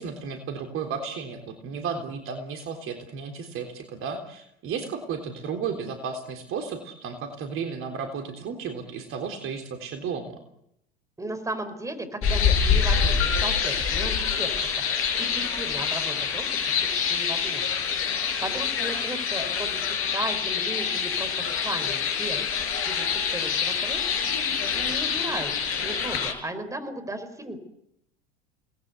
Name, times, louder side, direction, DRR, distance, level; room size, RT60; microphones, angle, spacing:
voice 1, 0.0-10.4, right 6 dB, 40° right, 5 dB, 3.5 m, -33 dB
voice 2, 11.2-14.8 15.2-17.8 18.1-21.3 21.6-22.4 22.8-24.0 24.7-27.6, right 1 dB, 10° right, 8 dB, 5.1 m, -36 dB
sound 1, 12.2-26.3, left 6 dB, 40° left, 5.6 m, -26 dB
29.5 x 19.5 x 8.3 m, 0.79 s
figure-of-eight pair, 80°, 33 cm